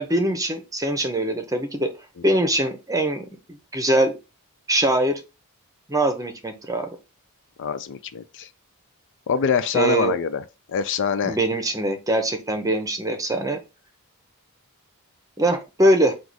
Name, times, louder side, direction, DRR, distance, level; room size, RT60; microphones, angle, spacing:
voice 1, 0.0-1.9 2.2-4.1 4.7-5.2 5.9-6.9 9.7-10.1 11.2-13.6 15.4-16.1, right 1 dB, 15° right, 0.7 m, -22 dB
voice 2, 7.6-8.5 9.3-11.4, left 6 dB, 55° left, 0.4 m, -24 dB
4.7 x 2.4 x 3.9 m
head